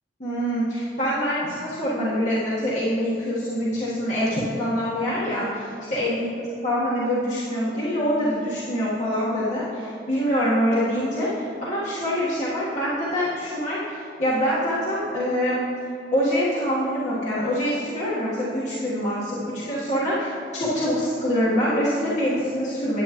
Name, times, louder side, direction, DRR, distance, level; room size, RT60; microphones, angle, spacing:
voice 1, 0.2-6.2 6.6-11.3 11.6-15.6 16.1-23.0, equal, 40° left, -9 dB, 1.4 m, -25 dB
10.0 x 8.3 x 3.0 m, 2.7 s
head